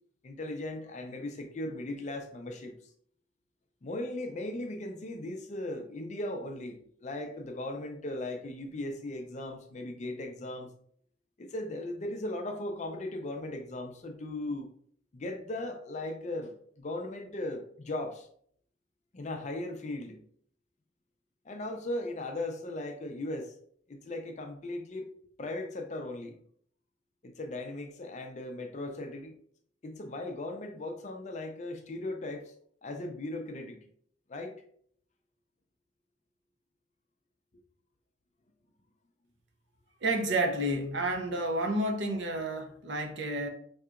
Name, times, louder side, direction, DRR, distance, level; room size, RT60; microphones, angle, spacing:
voice 1, 0.2-2.8 3.8-10.7 11.4-14.7 15.1-18.3 19.1-20.2 21.5-23.5 23.9-25.1 25.4-26.3 27.2-29.3 29.8-32.5 32.8-33.8 34.3-34.6, left 1 dB, 35° left, 0.4 m, -37 dB
voice 2, 40.0-43.5, right 1 dB, 60° right, 0.6 m, -30 dB
4.5 x 2.8 x 2.4 m
head